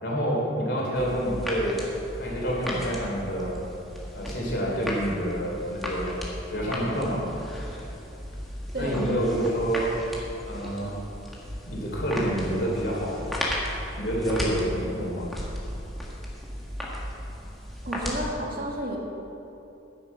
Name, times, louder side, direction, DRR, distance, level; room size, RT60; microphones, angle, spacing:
voice 1, 0.0-1.8 2.2-3.6 4.1-6.2 6.5-7.3 8.7-10.0 10.5-11.0 11.7-13.3 14.0-15.3, equal, 60° left, -3 dB, 3.3 m, -28 dB
sound 1, 0.9-18.2, equal, ahead, 1.6 m, -35 dB
voice 2, 17.8-19.0, right 1 dB, 50° right, -1 dB, 1.8 m, -31 dB
11.5 x 10.0 x 5.5 m, 2.9 s
head